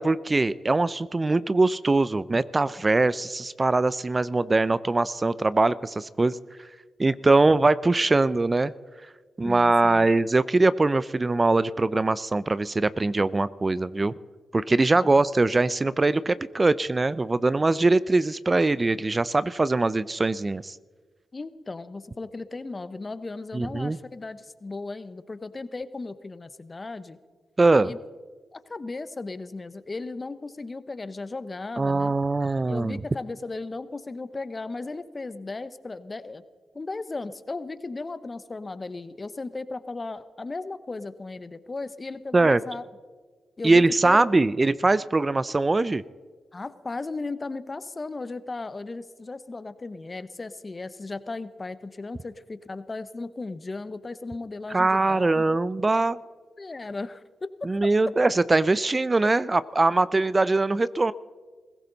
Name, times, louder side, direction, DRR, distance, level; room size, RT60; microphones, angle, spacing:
voice 1, 0.0-6.4 7.0-8.7 9.4-14.1 14.5-20.7 23.5-24.0 27.6-27.9 31.8-33.0 42.3-42.6 43.6-46.0 54.7-56.2 57.7-61.1, right 2 dB, 35° right, 17 dB, 0.5 m, -22 dB
voice 2, 9.4-10.1 15.0-15.3 21.3-27.2 27.8-28.0 28.5-32.1 32.7-36.4 36.7-42.8 43.6-44.5 46.5-55.6 56.6-57.9, left 3 dB, 35° left, 13 dB, 1.0 m, -36 dB
20.5 x 16.5 x 4.1 m, 1.4 s
supercardioid pair, 50°, 0 cm